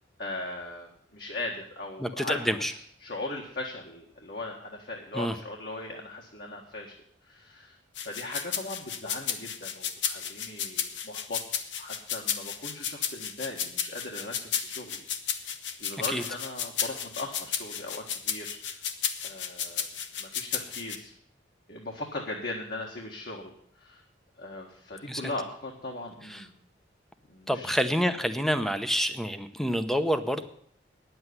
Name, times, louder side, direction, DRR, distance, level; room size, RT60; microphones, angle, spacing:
voice 1, 0.2-7.0 7.2-15.5 15.8-18.9 19.2-19.9 20.2-21.1 21.7-24.0 24.4-26.5 27.3-27.7, left 2 dB, 55° left, -1 dB, 1.7 m, -39 dB
voice 2, 2.0-2.7 5.1-5.3 16.1-16.2 25.1-25.2 26.3-26.4 27.5-30.4, equal, ahead, 9 dB, 0.8 m, -28 dB
sound 1, 7.9-21.0, left 8 dB, 75° left, 1.2 m, -33 dB
10.0 x 7.9 x 9.5 m, 0.64 s
head